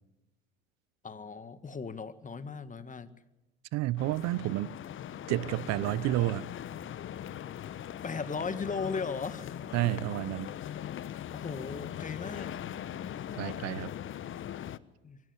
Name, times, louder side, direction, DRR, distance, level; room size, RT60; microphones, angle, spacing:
voice 1, 1.0-3.1 8.0-9.5 11.3-12.6 15.0-15.2, left 5 dB, 25° left, 1.8 m, -37 dB
voice 2, 3.7-4.7 5.3-6.4 9.7-10.5 13.4-13.9, right 16 dB, 60° right, 0.8 m, -30 dB
sound 1, 4.0-14.8, left 10 dB, 40° left, 1.0 m, -40 dB
24.0 x 16.0 x 8.2 m
hypercardioid pair, 75°, 30 cm